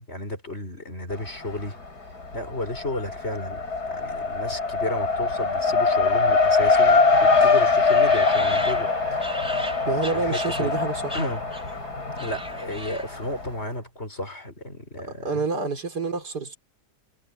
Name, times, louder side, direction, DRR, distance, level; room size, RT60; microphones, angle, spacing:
voice 1, 0.0-1.8 2.3-9.2 10.1-10.7 11.1-11.4 12.2-15.4, left 1 dB, 40° left, 6.1 m, -33 dB
Race car auto racing, 1.1-1.9 2.2-13.5, left 4 dB, 75° left, 6.2 m, -23 dB
sound 1, 7.9-10.8 11.1-11.8 12.1-13.3, equal, 5° right, 3.2 m, -37 dB
voice 2, 9.9-11.2 15.2-16.6, right 4 dB, 80° right, 4.2 m, -28 dB
omnidirectional pair, 1.7 m